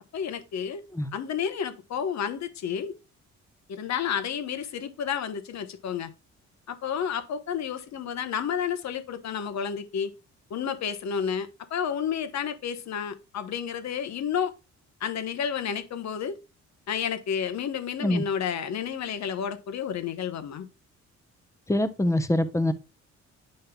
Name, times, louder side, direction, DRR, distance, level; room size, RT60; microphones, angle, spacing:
voice 1, 0.1-0.8 1.1-2.9 3.7-6.1 6.7-10.1 10.5-14.5 15.0-16.4 16.9-20.7, left 8 dB, 65° left, 1.1 m, -31 dB
voice 2, 21.7-22.7, left 1 dB, 10° left, 0.8 m, -24 dB
8.8 x 5.3 x 2.3 m
cardioid pair, 90°, 30 cm